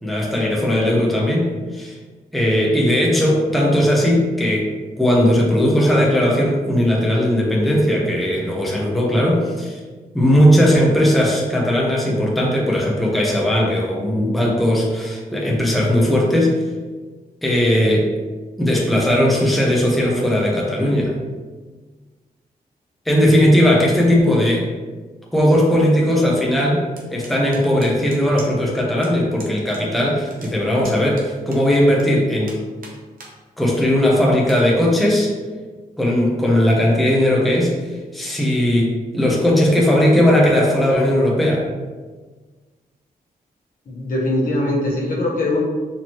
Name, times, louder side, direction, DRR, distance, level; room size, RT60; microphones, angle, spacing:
voice 1, 0.0-2.0 2.3-9.8 10.1-16.6 17.4-18.1 18.6-21.1 23.1-24.7 25.3-32.6 33.6-35.3 36.0-37.8 38.1-41.7, equal, ahead, -3 dB, 0.8 m, -17 dB
sound 1, 27.0-28.7 29.0-29.1 29.4-29.8 30.1-32.0 32.4-33.3 33.8-33.9 34.4-34.6, right 2 dB, 65° right, 0.9 m, -41 dB
voice 2, 43.9-45.6, left 1 dB, 60° left, -4 dB, 1.2 m, -22 dB
4.4 x 2.9 x 3.0 m, 1.4 s
cardioid pair, 75°, 16 cm